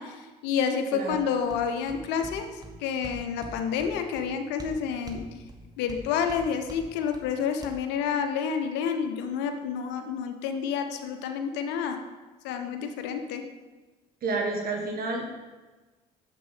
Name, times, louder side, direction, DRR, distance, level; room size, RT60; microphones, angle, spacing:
voice 1, 0.0-5.3 5.8-12.0 12.4-13.5, left 7 dB, 80° left, 6 dB, 0.9 m, -29 dB
sound 1, 1.1-7.7, right 1 dB, 20° right, 1.5 m, -46 dB
voice 2, 14.2-15.4, right 3 dB, 55° right, 2 dB, 1.4 m, -30 dB
9.0 x 7.4 x 4.1 m, 1.3 s
supercardioid pair, 60°, 18 cm